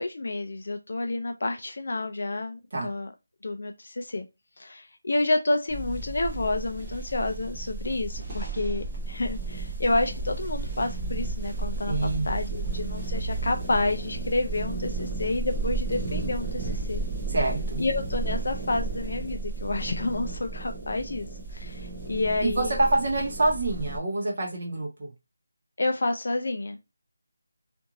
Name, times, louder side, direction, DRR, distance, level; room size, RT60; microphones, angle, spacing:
voice 1, 0.0-3.1 3.4-4.3 4.6-11.9 12.2-17.0 17.8-22.8 25.8-26.9, left 2 dB, 45° left, 7 dB, 0.4 m, -29 dB
sound 1, 5.7-24.0, right 3 dB, 10° right, 0.6 m, -33 dB
voice 2, 11.9-12.3 17.3-17.8 22.4-25.1, right 2 dB, 35° right, -1 dB, 1.0 m, -26 dB
2.6 x 2.5 x 2.9 m, 0.24 s
figure-of-eight pair, 180°, 0 cm